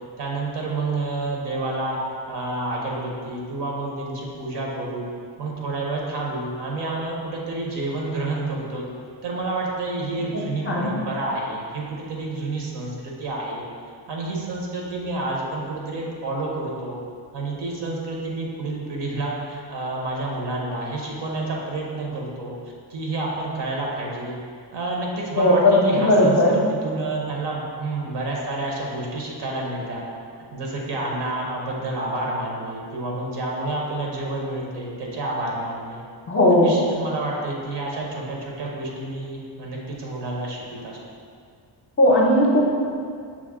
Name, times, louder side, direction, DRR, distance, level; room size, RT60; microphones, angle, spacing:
voice 1, 0.2-2.0 2.3-5.1 5.4-8.8 9.2-13.6 14.1-17.0 17.3-22.5 22.9-24.4 24.7-30.0 30.5-36.0 36.5-41.0, right 2 dB, 75° right, -2 dB, 0.9 m, -29 dB
voice 2, 25.3-26.6 36.3-36.8 42.0-42.7, left 1 dB, 30° left, -3 dB, 0.5 m, -17 dB
6.0 x 2.1 x 3.5 m, 2.2 s
cardioid pair, 145°, 43 cm